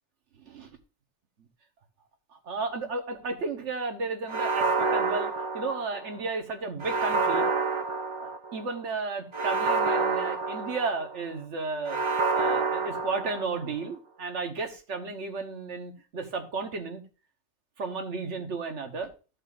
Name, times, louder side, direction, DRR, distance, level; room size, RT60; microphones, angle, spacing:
voice 1, 2.4-7.5 8.2-17.0 17.8-19.1, right 4 dB, 90° right, 5 dB, 1.5 m, -33 dB
sound 1, 4.3-6.2 6.8-8.6 9.3-11.2 11.9-13.7, right 4 dB, 35° right, 0.5 m, -28 dB
14.5 x 5.4 x 2.5 m, 0.34 s
omnidirectional pair, 1.2 m